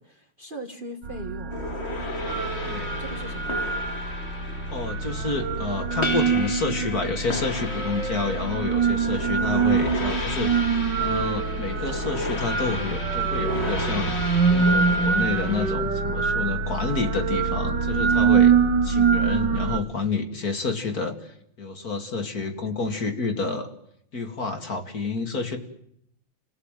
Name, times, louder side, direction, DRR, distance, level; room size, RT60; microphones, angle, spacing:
voice 1, 0.0-1.6 3.0-3.8, right 2 dB, 30° right, 6 dB, 1.5 m, -39 dB
sound 1, 1.0-19.8, right 5 dB, 65° right, 1.9 m, -24 dB
sound 2, 1.5-15.7, left 2 dB, 30° left, 2.5 m, -34 dB
voice 2, 2.7-3.0 4.7-10.6 11.0-14.2 14.5-18.5 18.8-23.7 24.1-25.6, left 4 dB, 45° left, 6 dB, 2.7 m, -29 dB
28.5 x 17.0 x 9.1 m, 0.74 s
omnidirectional pair, 2.2 m